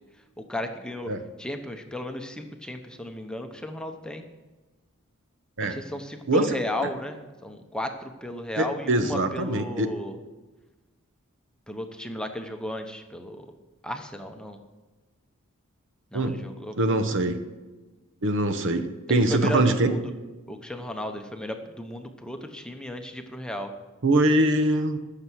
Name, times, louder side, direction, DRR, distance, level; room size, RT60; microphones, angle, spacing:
voice 1, 0.4-1.1 1.4-4.2 5.6-10.2 11.7-13.5 13.8-14.6 16.1-17.2 19.1-20.0 20.5-23.7, left 1 dB, 5° left, 5 dB, 0.8 m, -34 dB
voice 2, 8.6-9.9 16.1-16.4 16.8-17.4 18.2-19.9 24.0-25.0, right 1 dB, 60° right, 8 dB, 1.0 m, -23 dB
15.5 x 6.8 x 6.2 m, 1.2 s
head